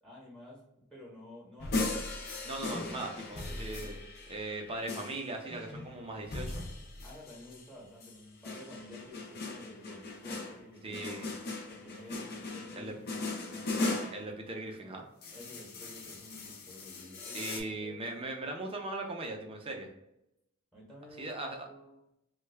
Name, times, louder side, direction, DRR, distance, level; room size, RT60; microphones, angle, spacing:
voice 1, 0.0-0.6 0.9-2.0 7.0-11.4 11.7-14.1 15.3-18.0 20.7-22.0, left 1 dB, 5° left, -4 dB, 1.0 m, -51 dB
sound 1, 1.6-7.7 8.0-14.3 15.2-17.6, left 2 dB, 45° left, 0.6 m, -38 dB
voice 2, 2.4-4.0 4.3-6.6 10.8-11.2 12.8-12.9 14.1-15.0 17.3-19.9 21.2-21.7, right 2 dB, 25° right, 2 dB, 0.6 m, -39 dB
3.2 x 2.3 x 3.3 m, 0.83 s
head